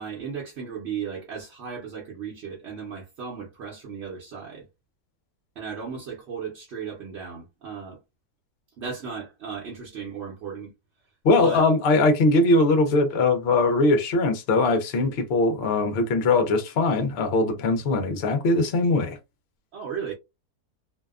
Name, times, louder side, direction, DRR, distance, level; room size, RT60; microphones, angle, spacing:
voice 1, 0.0-4.7 5.6-8.0 8.8-10.7 11.4-11.6 19.7-20.1, right 6 dB, 55° right, 0.9 m, -35 dB
voice 2, 11.2-19.2, left 2 dB, 55° left, 0.7 m, -21 dB
2.7 x 2.2 x 2.3 m
omnidirectional pair, 1.7 m